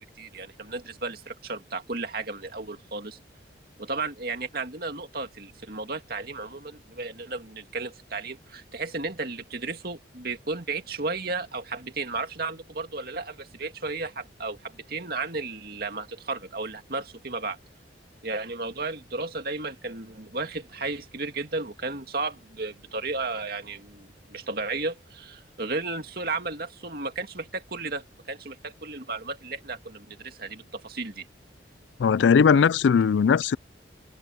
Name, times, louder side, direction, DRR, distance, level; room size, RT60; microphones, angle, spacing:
voice 1, 0.0-3.2 3.8-17.6 18.2-31.3, right 3 dB, 55° right, 2.3 m, -34 dB
voice 2, 32.0-33.6, left 6 dB, 80° left, 0.4 m, -19 dB
head